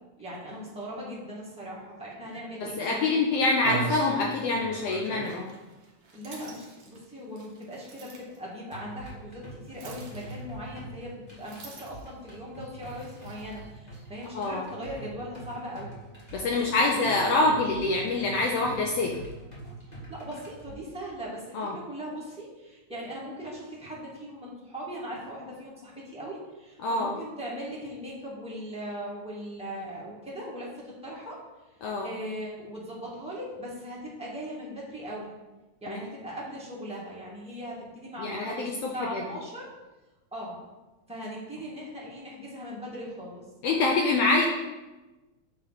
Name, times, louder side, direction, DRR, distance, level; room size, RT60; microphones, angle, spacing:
voice 1, 0.2-3.1 6.1-11.1 11.4-16.0 16.2-17.5 20.1-31.4 32.0-35.3 35.8-39.7 40.3-40.6 41.1-43.4, equal, 5° right, -6 dB, 0.9 m, -39 dB
sound 1, 2.3-2.4 3.0-3.1 3.5-8.4 9.7-10.7 11.4-12.2 12.8-13.6, right 4 dB, 60° right, 1.9 m, -40 dB
voice 2, 2.6-5.5 14.3-14.6 16.3-19.1 21.5-21.7 26.8-27.1 31.8-32.1 35.9-36.0 38.2-39.2 43.6-44.5, left 3 dB, 70° left, 0 dB, 1.6 m, -25 dB
sound 2, 8.7-20.7, right 2 dB, 20° left, 1.5 m, -45 dB
8.5 x 3.2 x 5.7 m, 1.1 s
omnidirectional pair, 3.3 m